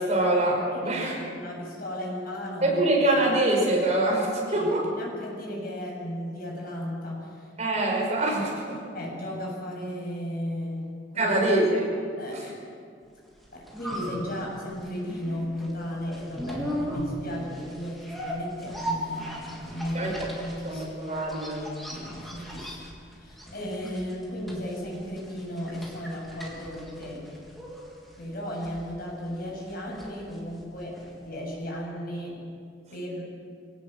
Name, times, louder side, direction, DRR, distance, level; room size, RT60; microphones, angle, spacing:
voice 1, 0.0-1.1 2.6-4.8 7.6-8.8 11.2-11.9 12.3-12.4 19.9-20.1 20.6-21.6, right 1 dB, 40° right, -2 dB, 5.7 m, -24 dB
voice 2, 0.7-2.8 4.5-7.5 8.9-11.4 12.2-12.5 13.5-20.8 21.9-22.8 23.1-27.2 28.2-32.4 32.9-33.2, equal, 55° left, -2 dB, 7.5 m, -35 dB
sound 1, 13.3-31.3 31.6-31.7, equal, ahead, 3.7 m, -38 dB
25.5 x 18.0 x 7.7 m, 2.3 s
head